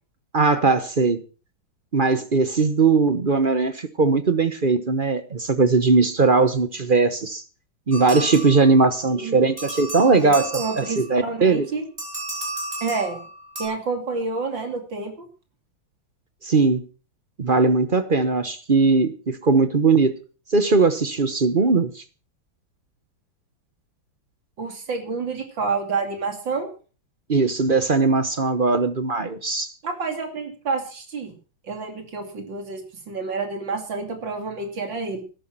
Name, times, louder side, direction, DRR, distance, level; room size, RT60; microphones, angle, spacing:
voice 1, 0.3-1.2 1.9-7.4 7.9-10.4 10.8-11.7 16.4-16.9 17.4-20.1 20.5-22.0 27.3-29.7, right 4 dB, 35° right, 11 dB, 0.8 m, -19 dB
sound 1, 7.9-9.1 9.6-11.3 12.0-13.6, right 1 dB, 15° right, 4.9 m, -34 dB
voice 2, 10.0-11.9 12.8-13.3 13.6-15.3 24.6-26.7 29.8-31.3 31.6-35.2, right 4 dB, 65° right, 6 dB, 3.4 m, -29 dB
13.0 x 11.0 x 6.0 m, 0.37 s
omnidirectional pair, 2.2 m